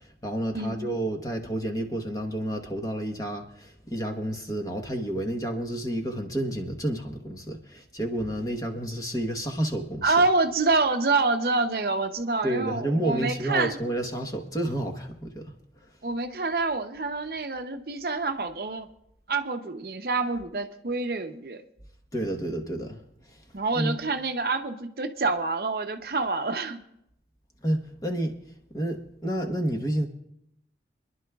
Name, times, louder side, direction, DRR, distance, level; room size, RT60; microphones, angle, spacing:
voice 1, 0.2-10.1 12.4-15.5 22.1-23.0 23.7-24.0 27.6-28.3 28.7-30.1, right 1 dB, 20° left, 1.1 m, -30 dB
voice 2, 10.0-13.8 16.0-18.9 19.3-21.6 23.5-26.8, right 3 dB, 55° right, 0.7 m, -27 dB
26.5 x 11.0 x 2.3 m
head